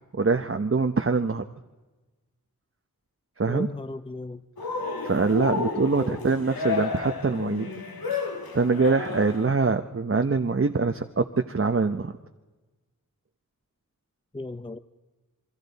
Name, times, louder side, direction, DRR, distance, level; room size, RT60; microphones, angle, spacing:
voice 1, 0.1-1.4 3.4-3.7 5.0-7.7 8.5-12.1, right 4 dB, 40° right, 6 dB, 0.8 m, -24 dB
voice 2, 3.5-4.4 5.9-6.2 14.3-14.8, left 2 dB, 15° left, 11 dB, 0.6 m, -35 dB
Cheering, 4.6-9.5, left 4 dB, 90° left, 1.6 m, -32 dB
28.0 x 23.5 x 4.1 m, 1.2 s
wide cardioid pair, 70°, 35 cm